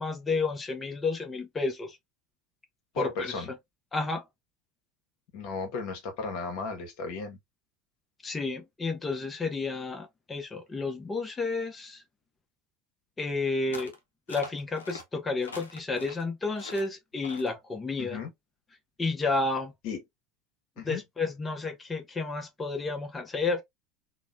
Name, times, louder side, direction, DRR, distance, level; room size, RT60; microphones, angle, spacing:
voice 1, 0.0-2.0 3.0-3.4 3.9-4.2 8.2-12.0 13.2-13.9 14.3-18.2 19.0-19.7 20.8-23.6, left 3 dB, 20° left, 0.7 m, -31 dB
voice 2, 2.9-3.5 5.3-7.4 18.0-18.3 19.8-20.0 20.8-21.0, left 4 dB, 65° left, 1.0 m, -34 dB
sound 1, 13.7-14.0 14.3-15.0 15.4-16.2 16.6-16.9 17.2-17.5, left 3 dB, 90° left, 0.5 m, -43 dB
2.9 x 2.1 x 2.5 m
hypercardioid pair, 80°, 0 cm